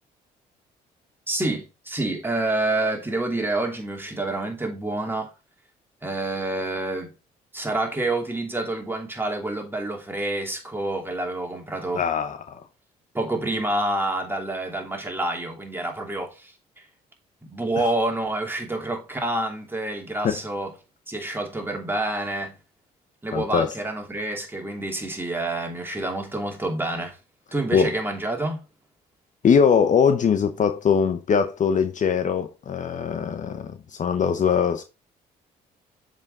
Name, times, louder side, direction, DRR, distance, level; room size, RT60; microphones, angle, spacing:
voice 1, 1.3-5.3 6.0-7.1 7.5-12.0 13.1-16.5 17.4-20.7 21.1-22.6 23.2-27.2 27.5-28.6, right 2 dB, 10° right, 2.7 m, -28 dB
voice 2, 11.9-12.6 20.2-20.4 23.3-23.7 27.7-27.9 29.4-34.8, left 6 dB, 45° left, 0.8 m, -21 dB
7.4 x 5.1 x 3.8 m
supercardioid pair, 65°, 18 cm